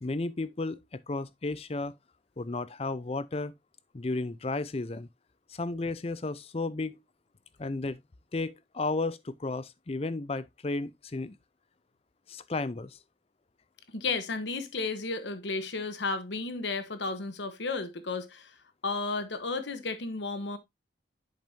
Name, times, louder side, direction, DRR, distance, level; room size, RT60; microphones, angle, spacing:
voice 1, 0.0-1.9 2.4-3.5 3.9-5.1 5.5-7.0 7.6-8.0 8.3-11.4 12.3-13.0, left 3 dB, 35° left, 0.5 m, -33 dB
voice 2, 13.9-18.5 18.8-20.6, left 3 dB, 80° left, 1.1 m, -33 dB
10.5 x 5.3 x 2.6 m
head